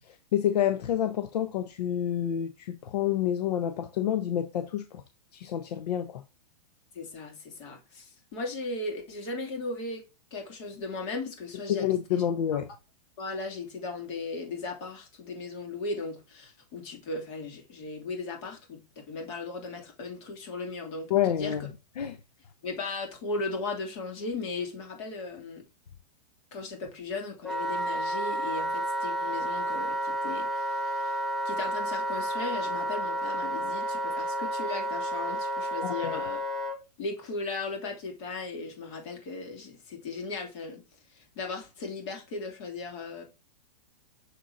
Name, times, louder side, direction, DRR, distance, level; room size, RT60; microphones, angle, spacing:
voice 1, 0.3-5.0 5.3-6.2 11.7-12.7 21.1-21.7 22.0-22.2 35.8-36.2, left 10 dB, 75° left, 0.8 m, -28 dB
voice 2, 6.9-10.0 10.3-12.2 12.5-12.6 13.2-21.5 22.6-25.6 26.5-31.2 31.4-36.4 37.0-40.8 41.1-43.2, left 3 dB, 45° left, 2.8 m, -37 dB
Wind instrument woodwind instrument, 27.4-36.8, right 1 dB, ahead, 0.5 m, -31 dB
6.8 x 3.8 x 4.1 m
supercardioid pair, 155°, 20 cm